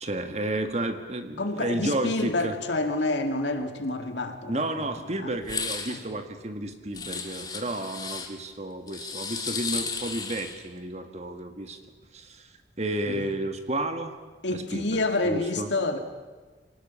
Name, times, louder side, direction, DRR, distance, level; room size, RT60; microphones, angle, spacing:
voice 1, 0.0-2.6 4.5-11.8 12.1-12.5 12.8-14.1 14.5-15.7, right 1 dB, 40° right, 7 dB, 1.7 m, -32 dB
voice 2, 1.4-4.9 5.2-5.3 5.9-6.0 13.1-13.3 14.4-16.0, left 2 dB, 80° left, 6 dB, 2.2 m, -28 dB
sound 1, 5.4-6.0 6.9-8.3 8.9-10.6, left 5 dB, 20° left, 2.1 m, -34 dB
25.0 x 18.5 x 7.1 m, 1.4 s
head